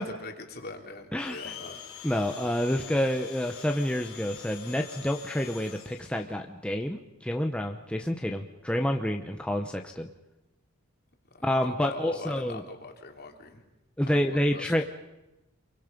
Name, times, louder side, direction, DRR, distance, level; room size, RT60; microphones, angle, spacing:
voice 1, 0.0-1.8 11.4-13.6 14.1-14.9, left 3 dB, 50° left, 4 dB, 2.9 m, -42 dB
voice 2, 1.1-1.5 2.0-10.1 11.4-12.6 14.0-14.9, equal, 5° left, 3 dB, 0.9 m, -28 dB
Domestic sounds home sounds, 1.2-6.3, left 8 dB, 85° left, 3.9 m, -45 dB
27.5 x 23.5 x 5.3 m, 0.99 s
head